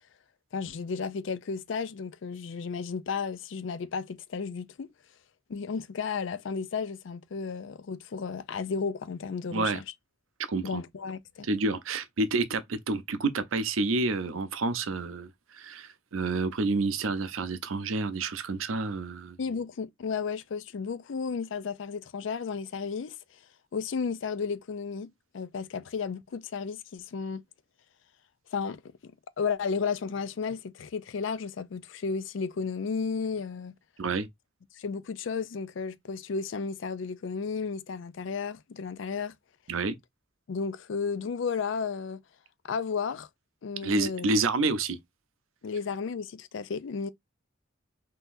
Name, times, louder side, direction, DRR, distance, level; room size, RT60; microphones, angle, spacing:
voice 1, 0.5-4.9 5.5-9.8 10.6-11.5 19.4-23.2 23.7-27.4 28.5-29.1 29.4-33.8 34.7-39.3 40.5-42.2 42.6-43.3 43.6-44.3 45.6-47.1, left 5 dB, 70° left, 0.4 m, -33 dB
voice 2, 10.5-10.8 11.4-19.4 34.0-34.3 39.7-40.0 43.8-45.0, right 3 dB, 90° right, 0.6 m, -29 dB
3.7 x 2.8 x 2.5 m
head